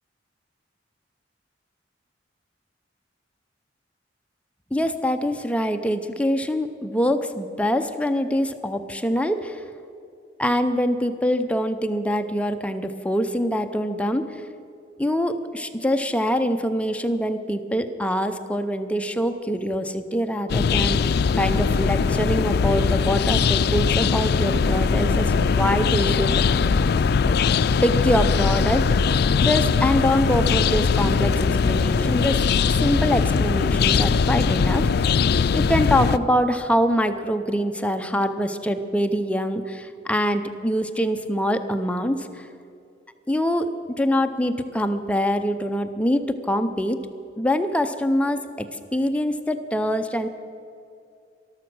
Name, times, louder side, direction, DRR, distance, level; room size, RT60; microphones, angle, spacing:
voice 1, 4.7-9.6 10.4-14.4 15.0-26.7 27.3-27.4 27.8-28.8 29.4-32.4 32.8-35.2 35.5-42.5 43.3-43.7 44.0-47.0 47.4-48.7 48.9-50.3, equal, 5° left, 7 dB, 0.6 m, -24 dB
sound 1, 20.5-36.2, left 5 dB, 60° left, 0.4 m, -20 dB
13.0 x 12.5 x 6.2 m, 2.5 s
head